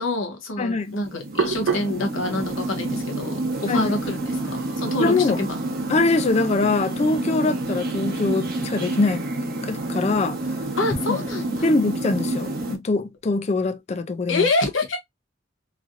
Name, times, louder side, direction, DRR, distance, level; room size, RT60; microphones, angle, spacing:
voice 1, 0.0-5.6 7.3-7.6 10.8-11.7 14.3-15.0, left 2 dB, 80° left, 1.0 m, -26 dB
voice 2, 0.6-1.0 3.7-3.9 5.0-5.4 5.9-9.3 9.6-10.4 11.1-11.2 11.6-14.5, left 3 dB, 35° left, 0.3 m, -23 dB
Hands, 0.6-6.5, right 5 dB, 80° right, 0.5 m, -33 dB
sound 1, 0.9-12.8, right 2 dB, 50° right, 0.8 m, -29 dB
3.1 x 2.6 x 2.4 m
head